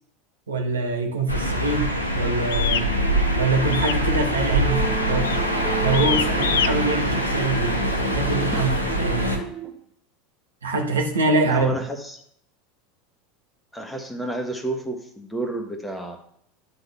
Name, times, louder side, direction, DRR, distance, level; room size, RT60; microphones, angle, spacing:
voice 1, 0.5-2.9 3.4-5.3 5.8-7.8 8.1-9.3 10.6-11.8, right 3 dB, 75° right, 3 dB, 1.1 m, -24 dB
sound 1, 1.3-9.4, equal, 85° left, 1.1 m, -24 dB
sound 2, 2.5-2.9 3.7-4.1 4.3-4.7 5.2-5.5 5.9-6.7, left 9 dB, 65° left, 0.4 m, -25 dB
sound 3, 2.7-9.7, right 7 dB, 30° right, 1.2 m, -33 dB
voice 2, 11.5-12.2 13.7-16.2, right 1 dB, 5° left, 4 dB, 1.3 m, -30 dB
11.0 x 3.9 x 3.4 m, 0.68 s
figure-of-eight pair, 80°, 0 cm